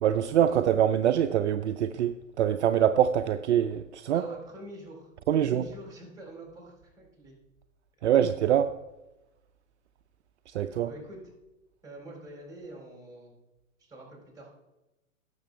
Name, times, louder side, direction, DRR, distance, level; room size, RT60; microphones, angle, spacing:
voice 1, 0.0-4.2 5.3-5.6 8.0-8.7 10.5-10.9, right 10 dB, 60° right, 0.5 m, -24 dB
voice 2, 4.1-7.4 8.0-8.2 10.8-11.3 11.8-13.3 13.8-14.5, right 1 dB, 10° right, 4.1 m, -46 dB
17.0 x 7.1 x 3.3 m
figure-of-eight pair, 105°, 40 cm